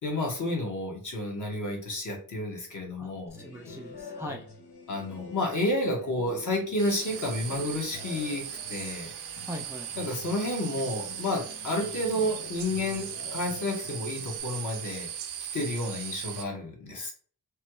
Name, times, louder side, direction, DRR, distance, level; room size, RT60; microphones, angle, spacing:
voice 1, 0.0-3.4 4.9-9.1 10.0-15.1 15.5-17.1, left 1 dB, 50° left, 1 dB, 1.1 m, -31 dB
voice 2, 3.0-4.5 9.5-9.9, equal, 10° right, 2 dB, 0.3 m, -40 dB
sound 1, 3.3-14.4, left 4 dB, 85° left, 1.0 m, -46 dB
sound 2, 6.8-16.4, right 9 dB, 80° right, 0.5 m, -38 dB
3.1 x 2.3 x 3.0 m, 0.43 s
wide cardioid pair, 105°, 39 cm